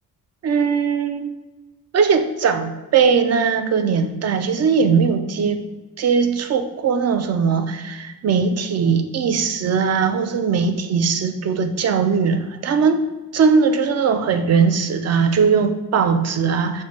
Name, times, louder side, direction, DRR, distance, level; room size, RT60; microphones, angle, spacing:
voice 1, 0.4-1.3 1.9-5.6 6.0-13.0 13.3-16.8, right 5 dB, 45° right, 8 dB, 0.5 m, -19 dB
6.1 x 2.1 x 3.1 m, 1.1 s
cardioid pair, 110°, 35 cm